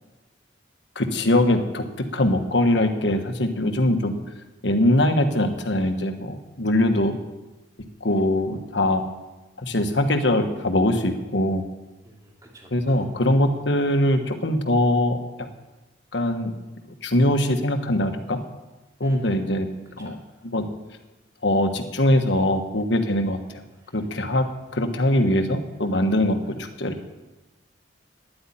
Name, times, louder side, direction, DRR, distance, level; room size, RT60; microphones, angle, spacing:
voice 1, 0.9-1.8 2.1-4.1 4.6-7.1 8.0-9.0 9.6-11.6 12.7-15.2 16.1-16.5 17.0-18.4 19.0-19.7 20.0-20.2 20.4-20.7 21.4-23.4 23.9-24.4 24.7-26.9, left 1 dB, 70° left, 6 dB, 1.4 m, -22 dB
voice 2, 12.0-13.0 19.0-19.4 20.0-20.1 23.8-24.2 26.4-26.6, right 2 dB, 20° right, -1 dB, 2.4 m, -49 dB
10.5 x 8.5 x 10.0 m, 1.1 s
head